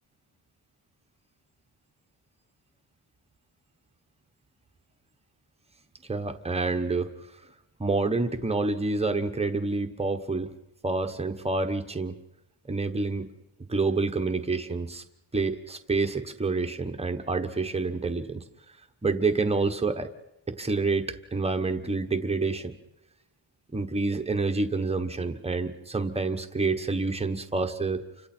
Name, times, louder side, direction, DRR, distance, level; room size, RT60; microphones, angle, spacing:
voice 1, 6.1-7.1 7.8-10.5 10.8-12.2 12.7-13.3 13.7-15.0 15.3-18.4 19.0-20.1 20.5-22.7 23.7-28.0, right 3 dB, 15° right, 6 dB, 1.1 m, -28 dB
29.5 x 25.5 x 4.5 m, 0.89 s
wide cardioid pair, 175°, 47 cm